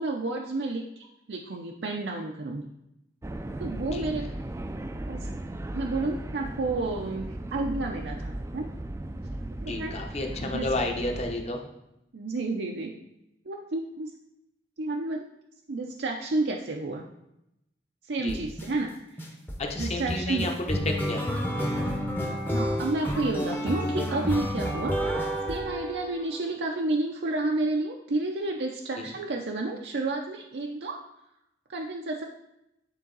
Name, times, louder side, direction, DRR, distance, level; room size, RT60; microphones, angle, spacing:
voice 1, 0.0-2.7 3.6-4.3 5.1-5.3 5.7-8.7 9.6-9.9 10.4-10.8 12.1-13.0 13.5-14.1 14.8-15.2 15.7-17.0 18.0-19.0 19.2-19.3 19.7-20.5 22.5-25.2 25.5-31.0 31.7-32.2, right 2 dB, 70° right, 1 dB, 0.5 m, -31 dB
sound 1, 3.2-11.4, right 1 dB, 15° right, 0.3 m, -36 dB
voice 2, 9.6-11.6 18.2-18.4 19.6-20.8 21.0-21.2 29.0-29.1, left 2 dB, 40° left, 2 dB, 0.9 m, -31 dB
sound 2, 18.3-18.7 19.2-26.4, equal, 10° left, 0.7 m, -30 dB
9.2 x 3.8 x 3.9 m, 0.85 s
head